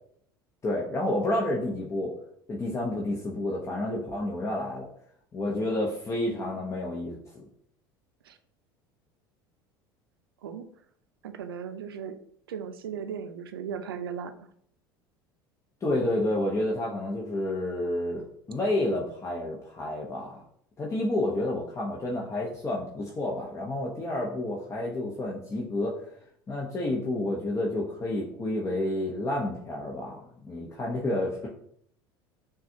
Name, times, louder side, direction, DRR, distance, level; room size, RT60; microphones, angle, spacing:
voice 1, 0.6-2.2 2.5-4.9 5.3-7.4 15.8-20.3 20.8-26.0 26.5-31.5, left 1 dB, 25° left, -4 dB, 0.8 m, -30 dB
voice 2, 11.2-12.1 12.5-14.5, right 7 dB, 85° right, 10 dB, 0.4 m, -37 dB
5.8 x 2.4 x 2.7 m, 0.67 s
hypercardioid pair, 75°, 12 cm